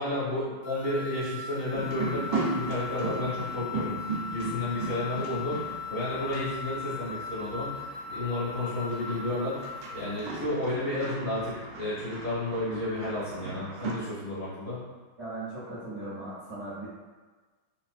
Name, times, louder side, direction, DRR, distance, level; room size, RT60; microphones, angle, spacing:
voice 1, 0.0-3.9 4.3-9.6 9.9-14.8, left 1 dB, 45° left, -10 dB, 1.4 m, -32 dB
sound 1, 0.6-10.2, left 6 dB, 80° left, 1.4 m, -39 dB
sound 2, 1.7-13.9, right 3 dB, 75° right, 1.2 m, -37 dB
voice 2, 15.2-16.9, right 2 dB, 55° right, -11 dB, 0.8 m, -38 dB
3.4 x 2.8 x 2.4 m, 1.3 s
omnidirectional pair, 2.2 m